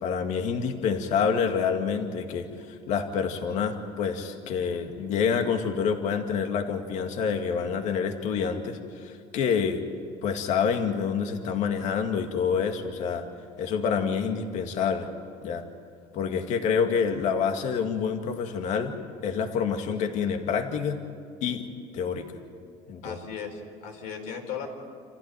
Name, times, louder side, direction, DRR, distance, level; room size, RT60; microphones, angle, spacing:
voice 1, 0.0-9.8 10.2-13.2 13.6-15.1 15.4-15.6 16.1-18.9 19.2-21.0 21.4-21.7 21.9-22.4 22.9-23.2, left 6 dB, 60° left, 5 dB, 2.1 m, -27 dB
voice 2, 23.0-24.7, left 7 dB, 75° left, 3 dB, 4.2 m, -36 dB
28.0 x 15.0 x 9.2 m, 2.3 s
cardioid pair, 145°, 14 cm